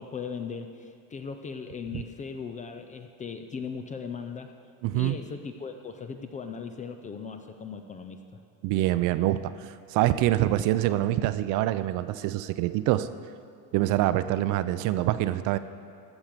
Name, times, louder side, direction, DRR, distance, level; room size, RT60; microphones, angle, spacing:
voice 1, 0.0-4.5 4.9-8.4, left 5 dB, 20° left, 7 dB, 0.4 m, -38 dB
voice 2, 4.8-5.2 8.6-13.1 13.7-15.6, right 14 dB, 55° right, 13 dB, 0.5 m, -25 dB
13.5 x 7.1 x 6.7 m, 2.4 s
cardioid pair, 150°, 38 cm